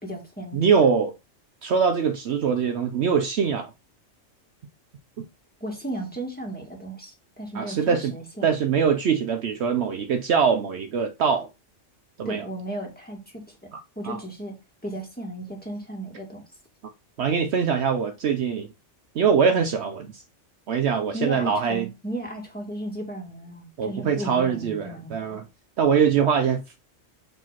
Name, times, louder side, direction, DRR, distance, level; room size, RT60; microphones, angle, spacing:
voice 1, 0.0-0.6 5.6-8.5 12.2-13.6 14.0-14.6 14.8-16.4 21.1-25.4, right 1 dB, 5° left, 2.1 m, -35 dB
voice 2, 0.5-1.1 1.6-3.7 7.5-8.1 8.4-11.5 12.2-12.4 13.7-13.8 14.0-14.2 17.2-18.7 19.1-20.2 20.7-21.9 23.8-25.4 25.8-26.8, right 6 dB, 65° right, 0.9 m, -23 dB
4.9 x 3.8 x 5.7 m
omnidirectional pair, 1.3 m